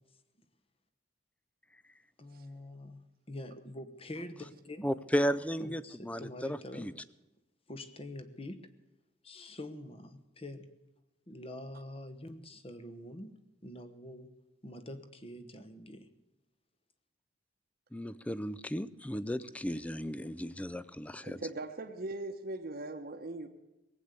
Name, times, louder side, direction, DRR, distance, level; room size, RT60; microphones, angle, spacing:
voice 1, 2.2-3.0 3.3-4.9 5.6-6.9 7.7-8.7 9.2-10.7 11.3-14.3 14.6-16.1, left 1 dB, 30° left, 10 dB, 1.1 m, -45 dB
voice 2, 4.8-6.9 17.9-21.4, equal, 5° left, 17 dB, 0.4 m, -34 dB
voice 3, 21.2-23.5, right 2 dB, 50° right, 3 dB, 1.0 m, -40 dB
19.0 x 8.3 x 8.1 m, 1.0 s
head